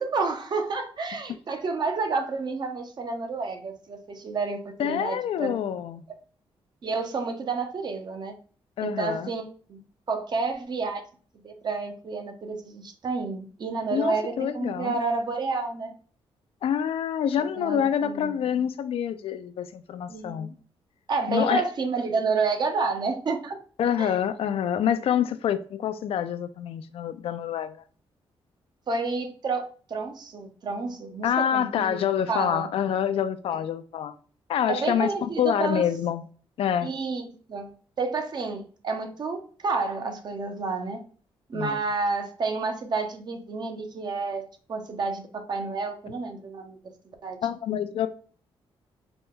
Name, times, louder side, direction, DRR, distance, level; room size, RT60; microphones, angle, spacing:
voice 1, 0.0-5.6 6.8-8.3 8.8-9.8 10.1-11.0 11.4-15.9 17.6-18.3 20.1-20.5 21.1-23.6 24.0-24.2 28.9-32.7 33.5-33.6 34.7-35.8 36.8-37.7 38.0-41.0 41.5-44.4 44.7-46.8 47.2-47.4, right 4 dB, 45° right, 0.7 m, -30 dB
voice 2, 4.8-6.0 8.8-9.3 13.9-15.0 16.6-20.5 21.3-21.6 23.8-27.8 31.2-34.1 34.5-36.2 36.6-36.9 41.5-41.8 47.4-48.1, left 9 dB, 70° left, 0.4 m, -27 dB
3.9 x 2.3 x 3.6 m
cardioid pair, 120°, 10 cm